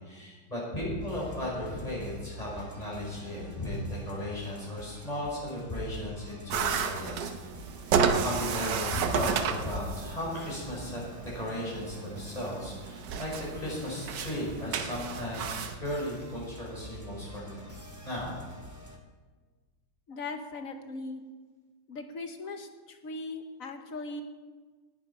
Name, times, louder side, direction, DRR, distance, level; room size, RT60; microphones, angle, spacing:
voice 1, 0.0-7.3 7.8-11.0 11.3-17.6 18.0-18.3, left 1 dB, 20° left, -5 dB, 5.3 m, -35 dB
sound 1, 1.0-19.0, equal, 10° right, 1.4 m, -47 dB
sound 2, 6.5-15.8, right 6 dB, 70° right, 1.5 m, -32 dB
voice 2, 20.1-21.2 21.9-24.2, left 3 dB, 55° left, 7 dB, 1.2 m, -39 dB
18.5 x 7.7 x 5.5 m, 1.4 s
omnidirectional pair, 2.0 m